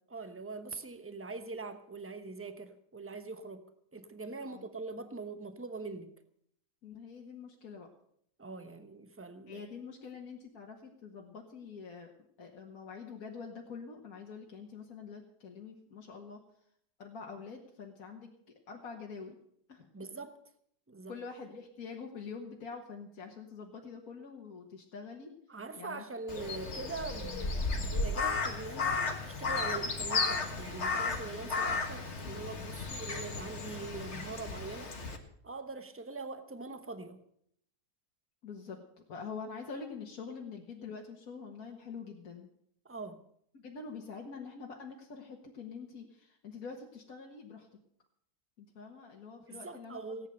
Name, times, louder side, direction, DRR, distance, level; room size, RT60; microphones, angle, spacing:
voice 1, 0.1-3.7 3.9-6.1 8.4-9.7 19.9-20.4 20.9-21.2 25.5-35.0 35.4-37.2 42.8-43.2 49.5-50.3, right 3 dB, 10° right, 0.8 m, -43 dB
voice 2, 6.8-7.9 9.5-12.1 12.4-16.4 17.0-19.4 19.7-19.9 21.1-25.3 25.7-26.0 38.4-38.8 39.1-42.5 43.5-47.7 48.6-50.0, left 5 dB, 65° left, 2.0 m, -45 dB
Crow, 26.3-35.2, left 4 dB, 45° left, 1.8 m, -34 dB
17.5 x 9.4 x 6.6 m
omnidirectional pair, 1.7 m